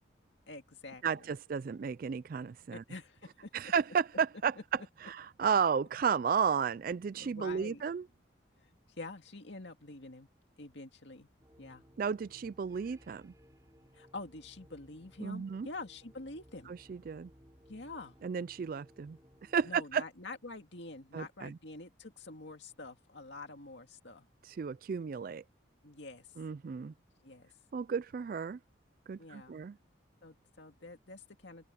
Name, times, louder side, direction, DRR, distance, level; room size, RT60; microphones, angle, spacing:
voice 1, 0.5-1.3 2.7-3.7 7.2-7.8 8.6-10.3 10.6-11.3 11.6-11.8 13.9-16.7 17.7-18.2 19.6-24.3 25.8-26.3 27.2-27.5 29.2-29.6 30.2-31.7, left 2 dB, 65° left, 2.2 m, -47 dB
voice 2, 1.0-2.8 3.5-4.5 5.0-8.0 12.0-13.3 15.2-15.7 16.7-17.3 18.2-20.0 21.1-21.6 24.5-25.4 26.4-26.9 27.7-28.6 29.1-29.7, right 6 dB, 45° right, 0.3 m, -33 dB
sound 1, 11.4-19.8, equal, 15° right, 4.5 m, -61 dB
open air
head